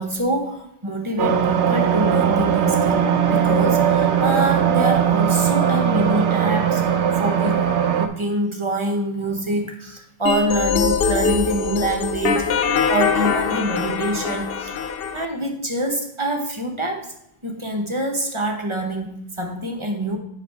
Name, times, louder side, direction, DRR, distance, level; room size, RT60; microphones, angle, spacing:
voice 1, 0.0-6.8 7.2-7.7 8.0-12.6 12.9-14.8 15.1-17.1 17.4-20.2, right 1 dB, 25° right, 2 dB, 1.1 m, -25 dB
sound 1, 1.2-8.1, right 8 dB, 90° right, 1.0 m, -19 dB
sound 2, 10.3-15.3, left 6 dB, 65° left, 0.8 m, -22 dB
8.4 x 6.1 x 3.4 m, 0.80 s
omnidirectional pair, 1.1 m